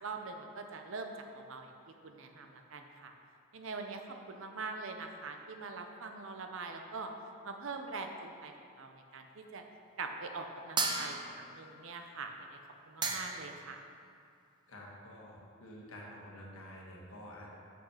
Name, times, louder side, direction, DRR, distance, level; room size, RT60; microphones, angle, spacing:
voice 1, 0.0-1.7 2.0-3.1 3.5-7.1 7.4-9.6 10.0-12.6 12.9-13.8, right 4 dB, 65° right, 5 dB, 0.7 m, -43 dB
sound 1, 10.8-11.6 12.7-12.8 13.0-13.6, right 4 dB, 20° right, 0.5 m, -34 dB
voice 2, 14.7-17.6, equal, 70° left, -3 dB, 1.4 m, -49 dB
6.3 x 5.6 x 5.7 m, 2.4 s
head